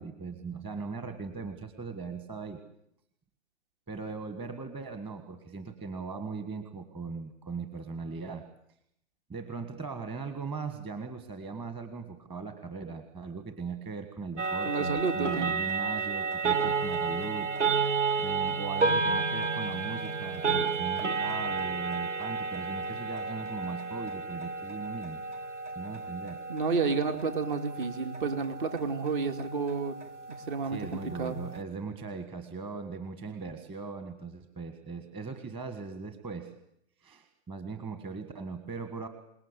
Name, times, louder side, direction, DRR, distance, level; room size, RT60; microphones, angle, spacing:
voice 1, 0.0-2.6 3.9-8.4 9.3-17.5 18.2-25.2 25.7-26.4 30.6-36.5 37.0-39.1, right 4 dB, 15° right, 8 dB, 1.7 m, -39 dB
sound 1, 14.4-31.6, right 4 dB, 85° right, 1.2 m, -32 dB
voice 2, 14.6-15.5 26.5-30.0 30.5-31.4, right 4 dB, 45° right, 7 dB, 2.8 m, -30 dB
27.5 x 19.0 x 8.3 m, 0.75 s
hypercardioid pair, 140°, 35 cm